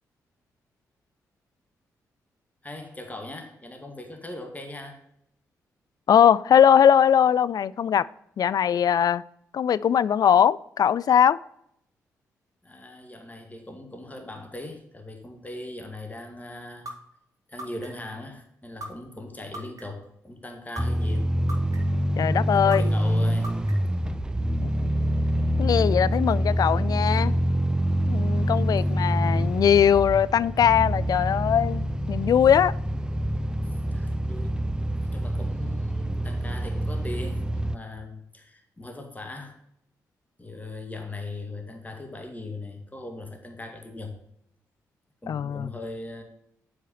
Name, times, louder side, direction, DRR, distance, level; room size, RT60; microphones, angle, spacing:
voice 1, 2.6-5.0 12.6-16.9 17.5-21.3 22.5-23.5 33.9-34.6 35.0-39.6 40.4-44.2 45.2-46.2, left 2 dB, 20° left, 2.2 m, -39 dB
voice 2, 6.1-8.1 8.4-9.2 9.5-11.4 22.2-22.9 24.6-24.9 25.6-27.3 28.1-32.7 45.3-45.7, left 8 dB, 60° left, 0.4 m, -20 dB
sound 1, 16.9-17.0 17.6-18.1 18.8-18.9 19.5-20.1 20.8-20.9 21.5-22.0 22.7-22.8 23.4-24.0, right 1 dB, 50° right, 2.3 m, -37 dB
sound 2, 20.8-37.8, equal, 10° right, 0.5 m, -26 dB
7.7 x 4.7 x 6.9 m
hypercardioid pair, 45°, 7 cm